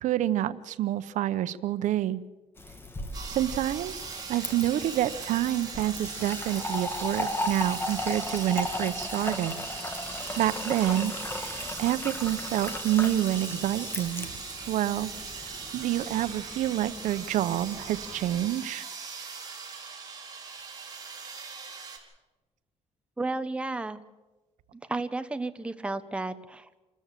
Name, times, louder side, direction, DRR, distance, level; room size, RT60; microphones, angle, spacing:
voice 1, 0.0-2.2 3.3-4.0 4.3-9.6 10.4-14.3 14.7-15.1 15.4-18.8, right 13 dB, 85° right, 14 dB, 0.8 m, -28 dB
Fill (with liquid), 2.6-18.4, left 1 dB, 20° left, 2.1 m, -37 dB
sound 1, 3.1-22.0, right 5 dB, 30° right, 4.4 m, -40 dB
voice 2, 23.2-24.0 24.9-26.8, right 2 dB, 10° right, 9 dB, 1.0 m, -32 dB
26.5 x 14.0 x 7.5 m, 1.1 s
cardioid pair, 125°, 12 cm